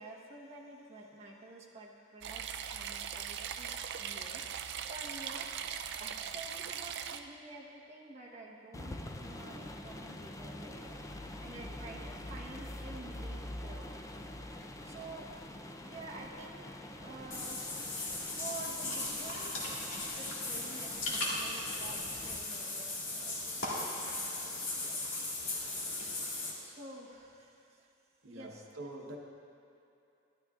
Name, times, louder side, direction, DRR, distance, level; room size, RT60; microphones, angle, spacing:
voice 1, 0.0-4.4 4.9-5.5 6.0-14.1 14.8-15.3 15.8-16.7 17.0-25.2 25.5-27.9 28.3-28.7, right 2 dB, 35° right, -3 dB, 1.0 m, -50 dB
sound 1, 2.2-7.2, right 8 dB, 60° right, 0.4 m, -40 dB
sound 2, 8.7-22.4, left 1 dB, 15° left, 0.4 m, -45 dB
Water / Bathtub (filling or washing), 17.3-26.5, left 2 dB, 75° left, 1.8 m, -37 dB
voice 2, 28.8-29.2, right 2 dB, 75° right, -1 dB, 1.0 m, -44 dB
12.0 x 12.0 x 2.4 m, 2.7 s
head